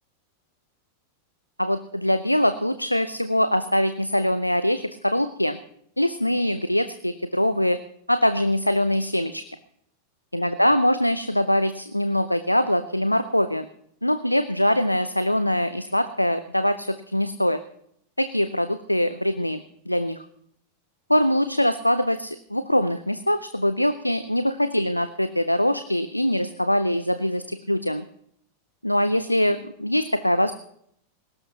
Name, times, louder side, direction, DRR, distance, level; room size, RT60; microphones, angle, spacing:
voice 1, 1.6-5.6 6.0-7.8 8.1-9.4 10.3-13.7 14.0-17.6 18.2-20.2 21.1-28.1 28.8-30.5, equal, 90° left, 12 dB, 0.6 m, -23 dB
20.5 x 17.5 x 2.8 m, 0.69 s
figure-of-eight pair, 90°, 0 cm